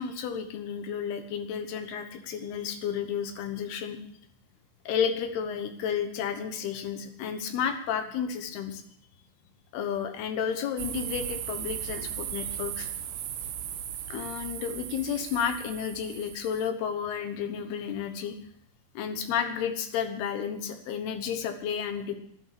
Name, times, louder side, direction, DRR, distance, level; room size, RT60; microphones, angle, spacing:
voice 1, 0.0-4.0 4.9-8.8 9.7-12.9 14.1-18.3 18.9-22.2, left 7 dB, 70° left, 7 dB, 2.8 m, -32 dB
sound 1, 10.8-16.7, right 10 dB, 70° right, 2.5 m, -37 dB
11.5 x 11.5 x 7.4 m, 0.70 s
omnidirectional pair, 5.6 m